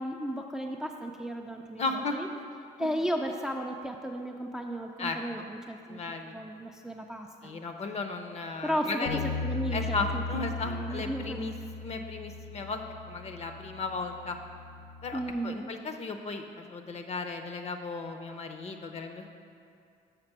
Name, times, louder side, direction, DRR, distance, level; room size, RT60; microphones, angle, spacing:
voice 1, 0.0-1.8 2.1-2.3 2.8-6.0 6.3-7.6 8.6-9.1 9.4-11.4 15.1-15.7, right 1 dB, 5° right, 2 dB, 0.4 m, -34 dB
voice 2, 1.8-2.2 2.8-2.9 5.0-5.5 5.9-6.4 7.4-9.2 9.7-11.5 11.8-12.8 13.1-14.4 15.0-19.3, left 3 dB, 40° left, 6 dB, 0.7 m, -35 dB
Bass guitar, 9.1-15.3, left 4 dB, 80° left, 0.5 m, -37 dB
6.7 x 5.0 x 6.0 m, 2.5 s
cardioid pair, 110°, 17 cm